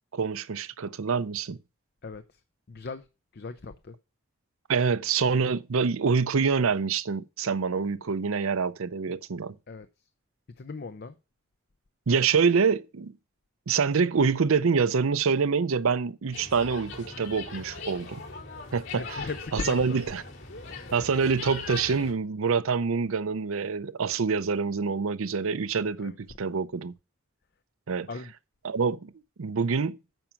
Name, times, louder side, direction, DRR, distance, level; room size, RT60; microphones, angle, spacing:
voice 1, 0.1-1.6 4.7-9.6 12.1-13.2 13.7-18.2 18.7-19.2 19.5-20.2 20.9-26.9 27.9-28.1 28.6-29.1 29.4-30.0, right 5 dB, 70° right, 0.6 m, -26 dB
voice 2, 2.0-2.4 2.7-3.1 3.3-3.9 9.7-9.9 10.6-11.1 19.0-20.0 26.0-26.1 28.1-28.3, left 3 dB, 45° left, 0.5 m, -38 dB
sound 1, 16.3-22.1, left 4 dB, 75° left, 4.5 m, -40 dB
9.0 x 5.8 x 5.8 m
head